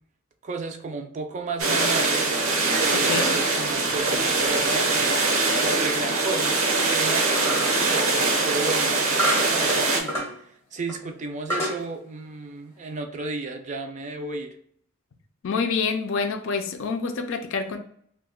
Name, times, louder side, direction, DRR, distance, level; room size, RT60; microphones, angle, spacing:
voice 1, 0.4-2.4 2.8-10.1 10.5-14.6, right 3 dB, 35° right, 0.4 m, -33 dB
sound 1, 1.6-10.0, right 3 dB, 70° right, 0.7 m, -23 dB
voice 2, 2.9-3.4 15.4-17.8, left 5 dB, 65° left, 0.4 m, -27 dB
sound 2, 7.3-7.9 9.2-10.3 10.9-11.0 11.5-11.8, right 1 dB, 10° left, 0.7 m, -28 dB
2.8 x 2.2 x 3.5 m
head